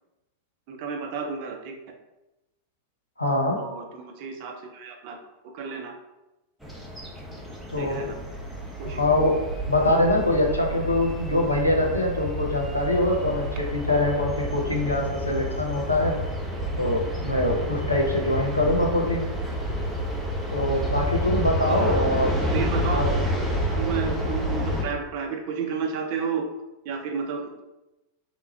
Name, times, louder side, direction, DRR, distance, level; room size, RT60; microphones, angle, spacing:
voice 1, 0.7-1.8 3.6-5.2 5.4-5.9 7.8-8.1 8.8-9.1 18.7-18.9 21.6-22.0 22.5-23.0 23.4-23.5 23.8-26.5 26.8-27.5, right 5 dB, 45° right, 4 dB, 0.7 m, -32 dB
voice 2, 3.2-3.6 7.7-8.1 8.9-9.4 9.7-16.2 16.8-19.3 20.5-22.3 22.9-23.1, left 1 dB, 80° left, 0 dB, 0.8 m, -24 dB
sound 1, 6.6-24.8, equal, ahead, 0.9 m, -29 dB
3.4 x 3.0 x 4.5 m, 0.96 s
figure-of-eight pair, 90°, 0 cm